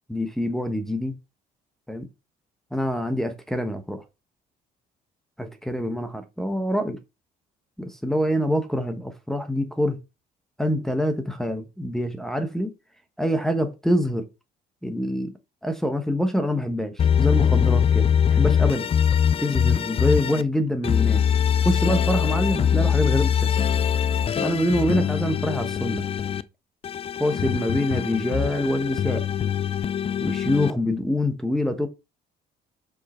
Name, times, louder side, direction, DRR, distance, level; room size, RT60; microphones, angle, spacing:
voice 1, 0.1-1.2 1.9-2.1 2.7-4.0 5.4-7.0 7.8-10.0 10.6-12.7 13.2-14.3 14.8-15.3 15.6-18.9 19.4-21.2 21.6-23.6 24.4-26.0 27.2-29.3 30.2-31.9, equal, ahead, 1.1 m, -25 dB
sound 1, 17.0-20.4 20.8-26.4 26.8-30.7, left 8 dB, 35° left, 0.5 m, -22 dB
6.4 x 5.2 x 4.4 m
cardioid pair, 110°, 17 cm